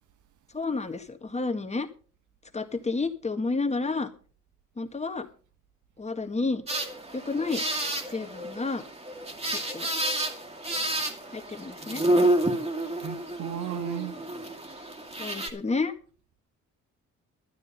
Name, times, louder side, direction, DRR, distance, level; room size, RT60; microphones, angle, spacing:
voice 1, 0.5-1.9 2.5-4.1 4.8-5.3 6.0-6.6 7.1-7.6 8.1-8.8 9.5-9.9 11.3-12.0 15.2-15.9, left 3 dB, 20° left, 1.8 m, -30 dB
sound 1, 6.7-15.5, right 1 dB, 20° right, 2.4 m, -29 dB
voice 2, 13.0-14.1, right 11 dB, 75° right, 1.2 m, -34 dB
12.5 x 9.7 x 5.5 m
cardioid pair, 90°, 30 cm